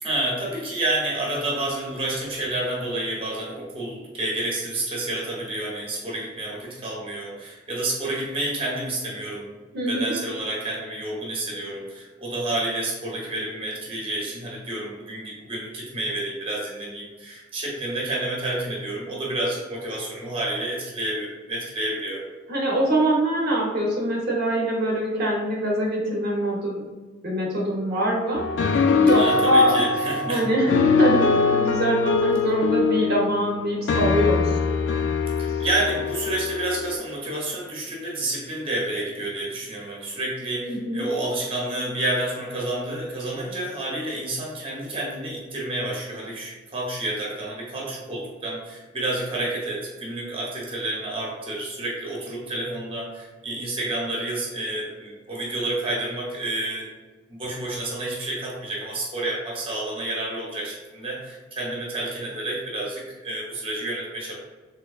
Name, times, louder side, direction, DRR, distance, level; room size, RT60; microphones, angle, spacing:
voice 1, 0.0-22.3 29.1-30.5 35.4-56.9 57.3-64.3, right 1 dB, 30° right, -3 dB, 0.8 m, -29 dB
voice 2, 9.7-10.2 22.5-26.8 27.2-28.4 29.0-29.7 30.3-30.7 31.0-34.5 40.7-41.1, right 1 dB, 60° right, -3 dB, 0.8 m, -23 dB
sound 1, 28.3-37.0, left 4 dB, 70° left, 0.3 m, -23 dB
3.4 x 3.0 x 2.3 m, 1.3 s
head